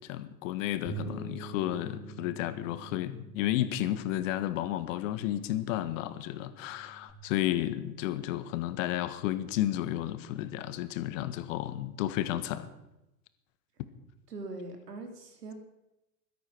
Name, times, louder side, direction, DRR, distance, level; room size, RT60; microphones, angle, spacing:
voice 1, 0.0-12.7, left 13 dB, 55° left, 12 dB, 1.6 m, -32 dB
Bass guitar, 0.9-7.1, right 4 dB, 20° right, 4.8 m, -46 dB
voice 2, 14.3-15.5, right 2 dB, 85° right, 6 dB, 3.3 m, -41 dB
16.0 x 13.0 x 6.2 m, 0.92 s
hypercardioid pair, 100°, 46 cm